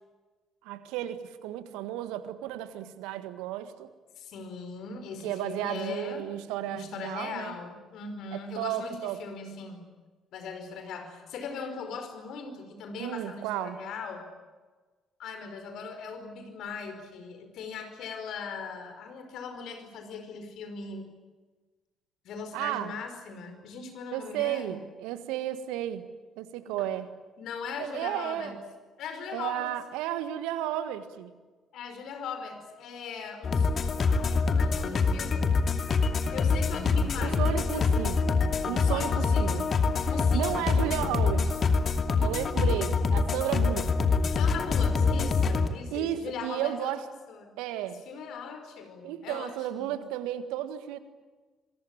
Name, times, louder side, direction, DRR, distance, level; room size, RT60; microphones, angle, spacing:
voice 1, 0.6-3.9 5.2-7.5 8.3-9.2 13.0-13.8 22.5-22.9 24.1-26.1 26.4-27.1 27.8-28.6 29.3-31.3 37.2-38.4 38.7-39.6 40.3-41.7 42.2-43.9 45.9-47.0 47.6-48.0 49.0-51.0, right 12 dB, 70° right, 12 dB, 1.6 m, -33 dB
voice 2, 4.2-6.3 6.6-9.9 10.3-14.3 15.2-21.1 22.2-24.8 26.8-26.9 27.4-28.6 29.0-29.7 31.7-33.8 34.0-35.6 36.3-38.0 38.7-39.6 40.1-40.7 42.6-42.9 44.3-47.0 47.3-47.5 48.1-50.0, left 5 dB, 60° left, 7 dB, 5.1 m, -39 dB
sound 1, 33.4-45.7, left 4 dB, 45° left, 2.6 m, -25 dB
26.5 x 23.0 x 8.9 m, 1.3 s
figure-of-eight pair, 45°, 0 cm